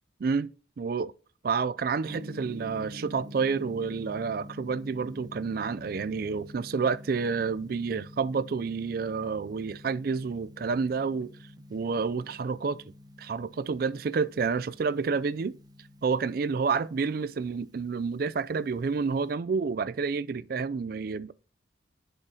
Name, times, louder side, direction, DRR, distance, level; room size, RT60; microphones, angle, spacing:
voice 1, 0.8-1.1 1.4-11.3 11.7-12.8 13.2-15.5 16.0-21.3, right 5 dB, 50° right, 0.3 m, -29 dB
Gong, 2.1-19.3, left 1 dB, 20° right, 0.9 m, -48 dB
10.5 x 5.7 x 2.8 m
head